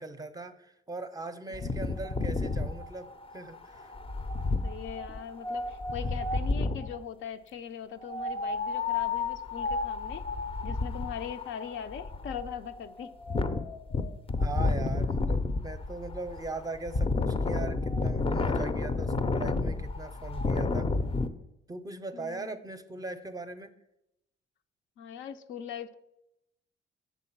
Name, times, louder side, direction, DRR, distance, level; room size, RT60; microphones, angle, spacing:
voice 1, 0.0-3.9 6.0-6.2 14.4-20.9 21.7-23.7, right 2 dB, 20° right, 10 dB, 0.5 m, -40 dB
Wind, 1.5-7.0 8.0-21.3, left 3 dB, 30° left, 0.5 m, -31 dB
voice 2, 4.6-10.2 10.6-13.1 22.1-22.6 25.0-25.9, left 8 dB, 75° left, 9 dB, 0.5 m, -40 dB
7.1 x 3.8 x 5.8 m, 0.85 s
cardioid pair, 90°, 20 cm